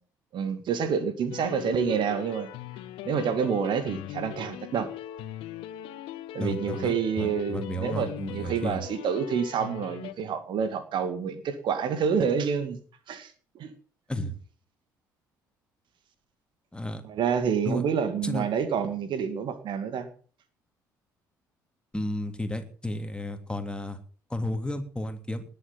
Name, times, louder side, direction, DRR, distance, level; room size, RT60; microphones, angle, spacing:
voice 1, 0.3-2.5 3.1-4.9 6.3-12.8 13.1-13.7 17.0-20.1, right 7 dB, 55° right, 11 dB, 2.3 m, -28 dB
sound 1, 1.3-10.1, left 14 dB, 65° left, 1.3 m, -40 dB
voice 2, 6.4-8.8 14.1-14.4 16.7-17.0 17.6-17.8 18.2-18.5 21.9-24.0 24.3-25.4, left 1 dB, 10° left, 7 dB, 3.2 m, -32 dB
19.5 x 7.8 x 7.4 m, 0.41 s
figure-of-eight pair, 50°, 10 cm